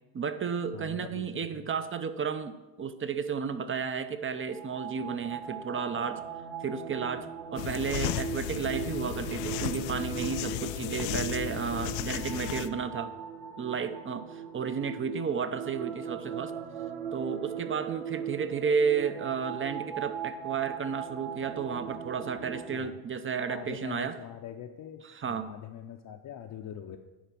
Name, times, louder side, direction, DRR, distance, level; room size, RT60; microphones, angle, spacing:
voice 1, 0.1-6.2 6.6-13.1 13.6-16.5 17.1-24.2 25.0-25.5, right 6 dB, 25° right, 11 dB, 0.6 m, -32 dB
voice 2, 0.7-1.7 10.4-12.0 12.6-12.8 22.7-23.0 23.5-25.0 25.3-27.0, left 10 dB, 45° left, 2 dB, 0.7 m, -44 dB
sound 1, 4.4-22.8, right 8 dB, 85° right, 1.2 m, -39 dB
sound 2, 7.6-12.7, left 13 dB, 85° left, 0.6 m, -34 dB
10.0 x 4.1 x 5.9 m, 1.1 s
supercardioid pair, 80°, 47 cm